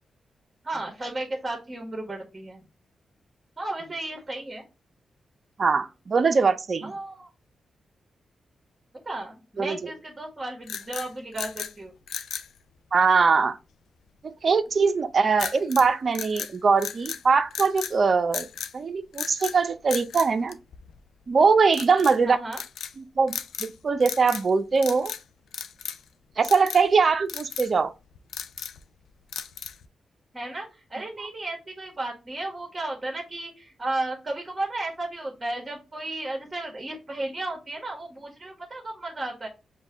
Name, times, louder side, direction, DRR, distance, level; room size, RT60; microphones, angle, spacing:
voice 1, 0.6-2.6 3.6-4.6 6.8-7.3 9.0-11.9 22.2-22.6 30.3-39.5, right 2 dB, 30° right, 1.3 m, -34 dB
voice 2, 5.6-6.9 9.6-9.9 12.9-13.6 14.2-18.5 18.7-20.6 21.3-22.4 23.0-25.1 26.4-27.9, right 5 dB, 55° right, 0.5 m, -22 dB
sound 1, 10.6-11.7 12.1-12.5 15.4-15.9 16.1-17.2 17.5-18.0 18.3-18.7 19.1-19.6 19.9-21.1 21.7-22.2 22.5-22.9 23.3-23.7 24.0-24.5 24.8-25.2 25.5-26.1 26.4-26.8 27.3-27.7 28.1-28.8 29.3-29.9, left 8 dB, 75° left, 0.4 m, -35 dB
5.3 x 2.2 x 3.6 m
supercardioid pair, 45°, 0 cm